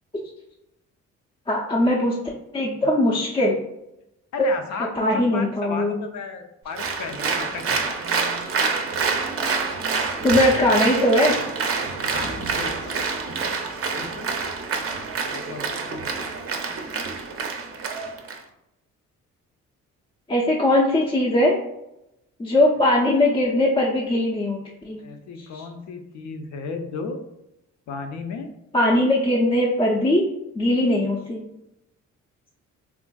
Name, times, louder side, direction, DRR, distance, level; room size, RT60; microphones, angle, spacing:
voice 1, 1.5-2.1 2.5-3.6 5.0-6.0 10.2-11.4 20.3-21.6 22.4-24.6 24.8-25.0 25.4-25.6 28.7-30.3 30.6-31.5, left 1 dB, 20° left, -4 dB, 0.4 m, -20 dB
voice 2, 4.3-8.0 12.0-13.6 13.9-14.3 15.3-16.1 25.0-27.2 27.9-28.5, left 4 dB, 70° left, 5 dB, 0.5 m, -34 dB
Applause, 6.8-18.4, right 5 dB, 50° right, 0.5 m, -27 dB
3.5 x 2.4 x 2.2 m, 0.87 s
cardioid pair, 90°, 30 cm